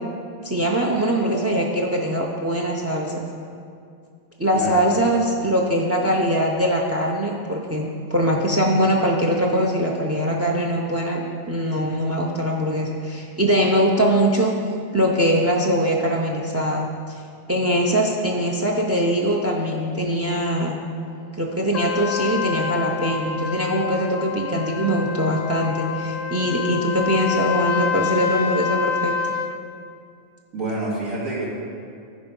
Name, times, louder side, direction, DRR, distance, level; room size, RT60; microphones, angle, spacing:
voice 1, 0.4-3.2 4.4-14.5 14.9-17.2 17.5-20.8 21.3-29.1, equal, 25° right, 0 dB, 0.3 m, -22 dB
Trumpet, 21.7-29.6, left 7 dB, 70° left, 0.9 m, -27 dB
voice 2, 30.5-31.5, right 2 dB, 70° right, -8 dB, 3.2 m, -27 dB
14.0 x 4.9 x 5.3 m, 2.4 s
omnidirectional pair, 1.5 m